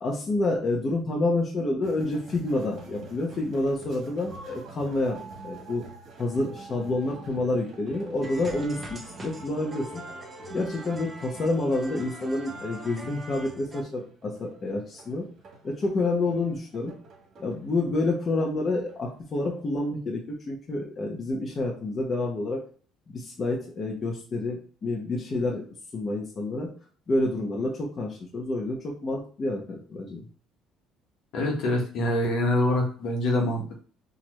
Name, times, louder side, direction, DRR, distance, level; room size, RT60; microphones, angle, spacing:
voice 1, 0.0-5.2 5.4-5.8 6.2-9.9 10.5-15.2 15.6-16.9 17.4-22.6 23.1-25.6 25.9-26.7 27.1-30.2, left 2 dB, 40° left, -1 dB, 1.0 m, -28 dB
sound 1, 1.8-19.7, right 3 dB, 55° right, 1.4 m, -48 dB
sound 2, 8.2-13.8, right 1 dB, 20° right, 1.0 m, -42 dB
voice 2, 31.3-33.8, left 1 dB, 65° left, 1 dB, 1.4 m, -25 dB
4.5 x 2.8 x 3.1 m, 0.43 s
supercardioid pair, 95°, 0 cm